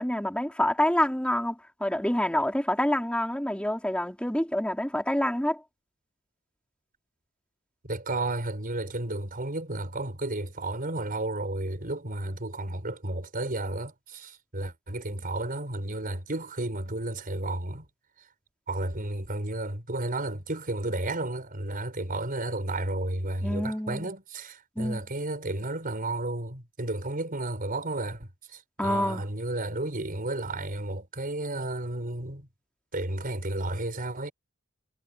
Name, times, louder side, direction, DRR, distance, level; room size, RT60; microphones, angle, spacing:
voice 1, 0.0-5.6 23.4-24.1 24.8-25.0 28.8-29.2, left 1 dB, 5° left, 3.8 m, -27 dB
voice 2, 7.8-17.8 18.7-32.5 32.9-34.3, right 2 dB, 40° right, 4.7 m, -32 dB
head